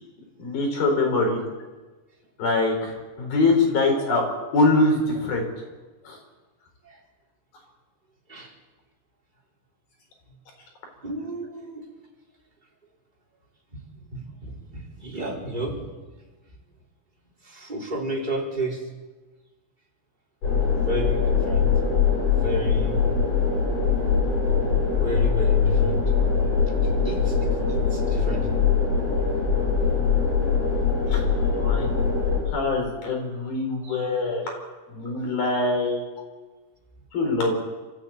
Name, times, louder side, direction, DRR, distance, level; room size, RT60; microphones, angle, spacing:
voice 1, 0.4-1.4 2.4-4.2 4.5-5.4 6.0-6.2 31.1-31.2 31.6-31.9 32.5-34.5 34.9-36.0 37.1-37.5, left 2 dB, 85° left, 2 dB, 6.6 m, -23 dB
voice 2, 11.0-11.8 13.9-15.8 17.4-18.8 20.8-21.7 22.4-23.0 24.5-26.0 26.8-27.4 27.7-28.6 33.8-34.1, right 1 dB, 10° right, -3 dB, 4.7 m, -32 dB
sound 1, 20.4-32.4, left 5 dB, 45° left, 8.3 m, -22 dB
27.5 x 14.0 x 9.0 m, 1.3 s
omnidirectional pair, 4.1 m